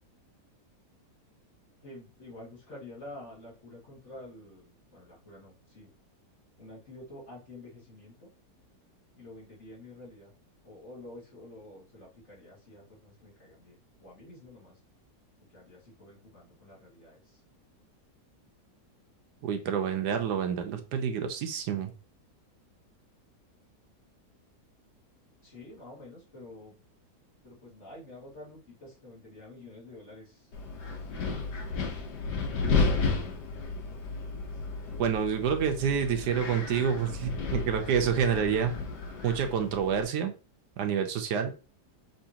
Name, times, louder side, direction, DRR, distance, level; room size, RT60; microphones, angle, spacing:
voice 1, 1.8-5.9 6.6-8.3 9.2-10.3 10.6-14.8 15.5-17.4 25.4-26.8 27.4-32.2, left 1 dB, 45° left, -5 dB, 2.1 m, -49 dB
voice 2, 19.4-21.9 35.0-38.7 39.2-40.3 40.8-41.5, right 7 dB, 80° right, 6 dB, 1.3 m, -28 dB
Wind, 30.5-40.0, left 4 dB, 80° left, 1.5 m, -32 dB
5.5 x 3.0 x 2.8 m, 0.32 s
omnidirectional pair, 1.8 m